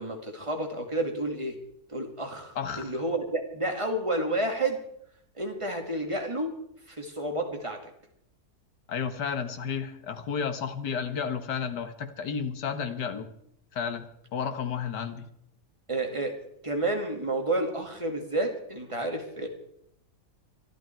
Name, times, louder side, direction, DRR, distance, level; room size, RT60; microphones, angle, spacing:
voice 1, 0.0-1.6 1.9-4.8 5.4-6.6 6.9-7.8 15.9-16.4 16.6-19.5, right 2 dB, 20° right, 3 dB, 2.2 m, -30 dB
voice 2, 2.6-2.9 8.9-13.3 13.7-14.1 14.3-15.3, left 6 dB, 90° left, 9 dB, 1.9 m, -32 dB
23.0 x 12.5 x 4.6 m, 0.74 s
omnidirectional pair, 1.8 m